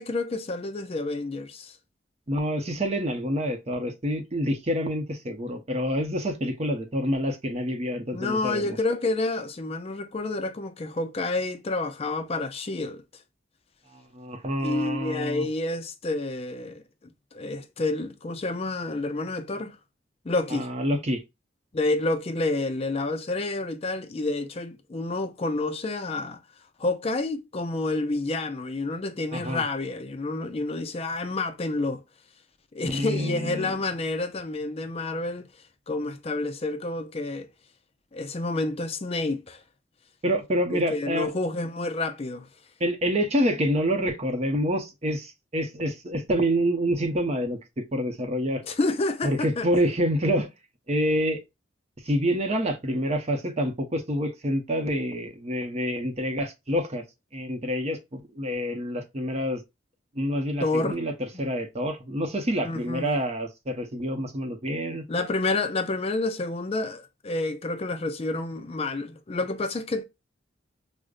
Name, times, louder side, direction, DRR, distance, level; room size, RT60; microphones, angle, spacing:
voice 1, 0.0-1.8 8.1-13.0 14.6-16.8 17.3-19.8 20.2-20.7 21.7-26.4 26.8-32.0 32.7-35.4 35.9-37.5 38.1-39.6 40.7-42.5 48.6-49.7 60.6-61.0 62.6-63.1 65.1-70.0, left 2 dB, 35° left, 0.4 m, -29 dB
voice 2, 2.3-8.6 13.9-15.5 20.5-21.2 29.3-29.6 32.8-33.7 40.2-41.3 42.8-48.6 49.2-50.5 50.9-51.4 52.0-57.0 57.3-59.6 60.1-65.0, equal, 35° right, 0.7 m, -27 dB
5.0 x 2.1 x 2.3 m
head